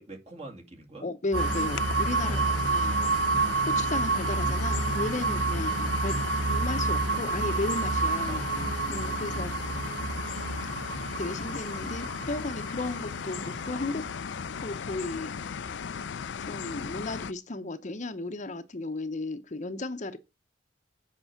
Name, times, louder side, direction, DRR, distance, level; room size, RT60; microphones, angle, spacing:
voice 1, 0.0-1.1 2.2-3.2 5.5-5.9 8.3-8.5 9.3-9.5, right 2 dB, 35° right, 2.1 m, -46 dB
voice 2, 1.0-2.9 3.7-6.2 6.5-8.4 8.9-9.5 10.7-10.9 11.1-14.0 14.5-15.8 16.5-20.2, left 2 dB, 40° left, 0.8 m, -35 dB
sound 1, 1.3-17.3, left 6 dB, 75° left, 0.5 m, -37 dB
sound 2, 1.3-15.1, right 3 dB, 75° right, 1.1 m, -29 dB
8.0 x 5.5 x 7.1 m
head